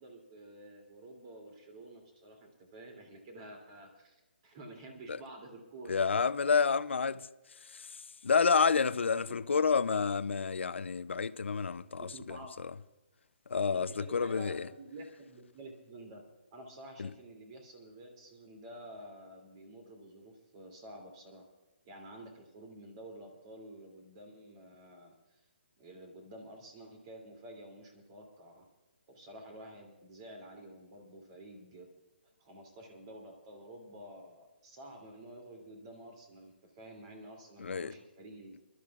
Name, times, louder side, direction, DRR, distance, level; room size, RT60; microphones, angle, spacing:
voice 1, 0.0-6.1 9.1-9.4 12.0-12.5 13.7-16.2 16.5-21.4 21.8-25.1 25.8-28.7 29.1-31.9 32.4-38.6, right 1 dB, 30° right, 2.8 m, -50 dB
voice 2, 5.9-7.3 8.2-12.4 13.5-14.6 17.0-17.1 37.6-37.9, left 5 dB, 85° left, 0.6 m, -29 dB
29.0 x 12.5 x 2.4 m
hypercardioid pair, 165°, 6 cm